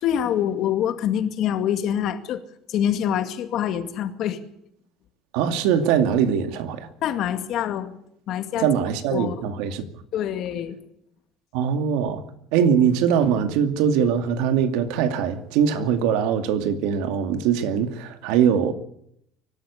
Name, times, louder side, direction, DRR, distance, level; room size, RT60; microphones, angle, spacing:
voice 1, 0.0-2.4 2.7-4.4 7.0-8.0 8.3-8.7 9.1-9.4 10.1-10.8, left 10 dB, 50° left, 2.2 m, -25 dB
voice 2, 5.3-6.9 8.6-9.8 11.5-12.2 12.5-18.7, right 8 dB, 80° right, 2.3 m, -22 dB
23.5 x 12.5 x 9.8 m
cardioid pair, 155°, 0 cm